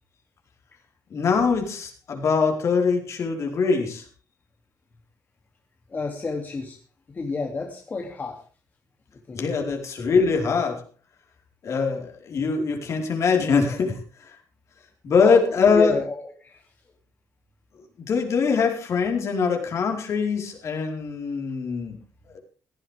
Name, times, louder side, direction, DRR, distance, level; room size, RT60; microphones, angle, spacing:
voice 1, 1.1-4.0 9.3-10.8 11.6-14.4 15.0-16.0 18.1-22.0 22.3-22.4, left 5 dB, 55° left, 2 dB, 4.6 m, -23 dB
voice 2, 5.9-6.8 7.1-8.4 9.3-9.4 15.2-16.6, left 3 dB, 30° left, 1 dB, 2.7 m, -29 dB
17.5 x 15.5 x 3.6 m, 0.38 s
cardioid pair, 145°, 6 cm